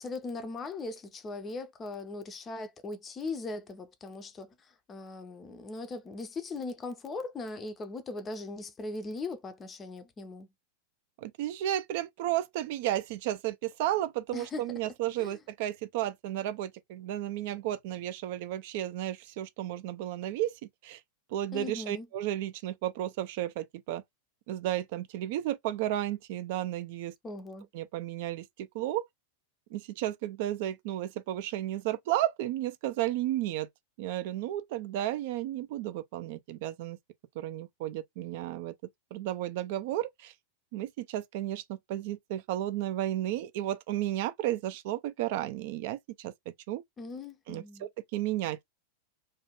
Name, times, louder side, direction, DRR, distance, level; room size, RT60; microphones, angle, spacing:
voice 1, 0.0-10.5 14.3-14.6 15.2-15.4 21.5-22.1 27.2-27.7 47.0-47.9, left 3 dB, 20° left, 0.5 m, -39 dB
voice 2, 11.2-21.0 21.3-24.0 24.5-27.1 27.7-29.1 29.7-33.7 34.0-37.0 37.4-38.7 39.1-40.3 40.7-46.3 46.7-46.8 47.5-48.6, right 13 dB, 50° right, 0.4 m, -33 dB
2.5 x 2.2 x 2.9 m
figure-of-eight pair, 90°, 0 cm